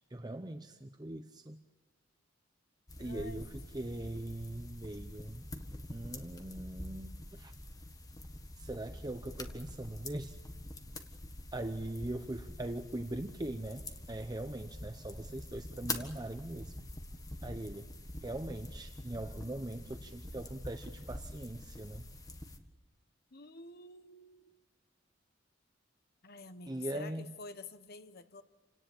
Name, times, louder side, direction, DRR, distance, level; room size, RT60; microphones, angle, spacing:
voice 1, 0.1-1.6 3.0-5.5 5.9-7.5 8.6-10.4 11.5-16.9 17.4-17.9 18.2-22.1 26.7-27.3, right 1 dB, 20° right, 7 dB, 0.8 m, -41 dB
sound 1, 2.9-22.6, left 1 dB, 20° left, 1.6 m, -46 dB
voice 2, 3.0-3.4 23.3-24.6 26.2-28.4, left 3 dB, 55° left, 11 dB, 1.1 m, -49 dB
28.5 x 18.0 x 8.5 m, 1.3 s
head